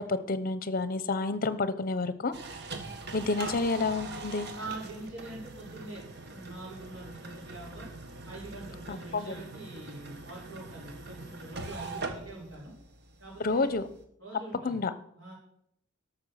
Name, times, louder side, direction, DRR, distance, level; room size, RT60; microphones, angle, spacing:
voice 1, 0.0-2.3 3.1-4.5 8.9-9.3 13.4-13.9 14.6-14.9, left 3 dB, 45° left, 14 dB, 0.8 m, -29 dB
sound 1, 2.3-14.0, right 3 dB, 60° right, 1.5 m, -43 dB
voice 2, 4.5-7.9 8.2-12.7 13.2-13.8 14.2-14.8 15.2-15.3, right 2 dB, 75° right, -10 dB, 4.7 m, -44 dB
12.5 x 6.2 x 6.4 m, 0.71 s
head